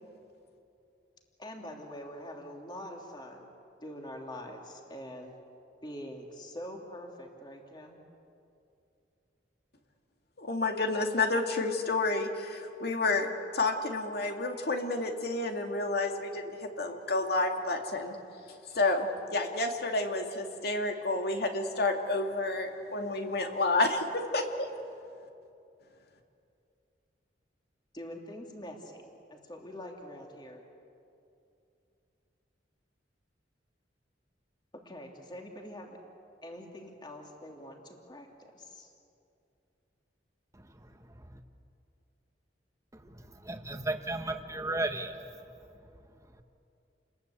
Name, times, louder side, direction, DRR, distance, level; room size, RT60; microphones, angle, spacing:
voice 1, 1.4-3.5 3.8-5.3 5.8-8.0 27.9-30.6 34.8-36.0 36.4-38.9, equal, 25° left, 1 dB, 2.9 m, -44 dB
voice 2, 10.4-13.3 13.5-18.2 18.7-24.7, left 2 dB, 60° left, 4 dB, 2.5 m, -30 dB
voice 3, 43.5-45.2, right 2 dB, 20° right, 5 dB, 1.6 m, -34 dB
29.5 x 21.0 x 8.4 m, 2.6 s
head